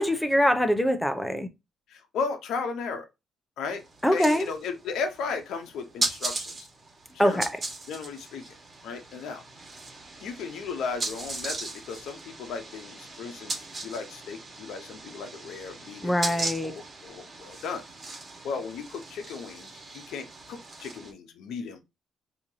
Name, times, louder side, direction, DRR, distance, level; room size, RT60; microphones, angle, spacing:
voice 1, 0.0-1.5 4.0-4.5 7.2-7.5 16.0-16.7, equal, 5° left, 0.7 m, -23 dB
voice 2, 1.9-3.0 3.6-3.8 4.1-6.7 7.1-7.5 7.9-8.4 8.8-9.4 10.2-17.8 18.4-21.8, left 5 dB, 80° left, 0.7 m, -35 dB
sound 1, 3.7-21.1, right 2 dB, 40° right, 1.4 m, -38 dB
4.4 x 2.8 x 2.7 m
cardioid pair, 90°, 0 cm